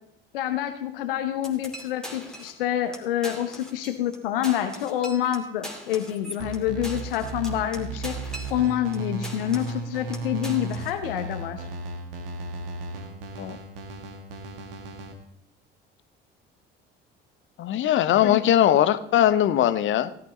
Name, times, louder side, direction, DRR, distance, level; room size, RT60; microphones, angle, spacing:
voice 1, 0.3-11.6 18.2-18.4, left 11 dB, 70° left, 8 dB, 1.0 m, -27 dB
sound 1, 1.4-2.6 2.9-3.0 3.2-4.2 4.4-9.0 9.2-9.8 10.1-11.0, equal, ahead, 2.6 m, -41 dB
sound 2, 6.4-15.1, right 3 dB, 70° right, 1.9 m, -35 dB
voice 2, 17.6-20.1, left 11 dB, 40° left, 14 dB, 0.9 m, -20 dB
18.0 x 11.5 x 3.2 m, 0.74 s
figure-of-eight pair, 55°, 30 cm